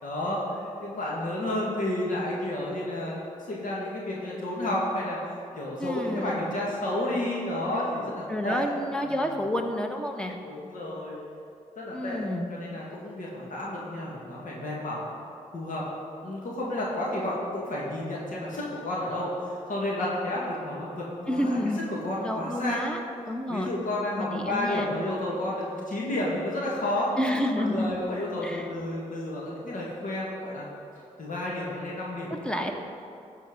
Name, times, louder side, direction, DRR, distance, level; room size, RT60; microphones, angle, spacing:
voice 1, 0.0-3.2 3.5-5.2 5.6-8.6 9.1-9.2 10.4-11.2 11.8-12.2 12.5-15.0 15.5-15.9 16.2-21.6 21.9-22.8 23.5-27.1 27.6-30.7 31.2-32.7, left 1 dB, 65° left, -4 dB, 2.0 m, -31 dB
voice 2, 5.8-6.5 8.3-10.4 11.9-12.5 21.3-21.8 22.2-23.0 23.3-23.7 24.2-24.9 27.2-27.9 28.4-28.7 32.3-32.7, left 1 dB, 5° left, 3 dB, 1.2 m, -29 dB
13.0 x 4.5 x 5.3 m, 2.5 s
supercardioid pair, 45°, 14 cm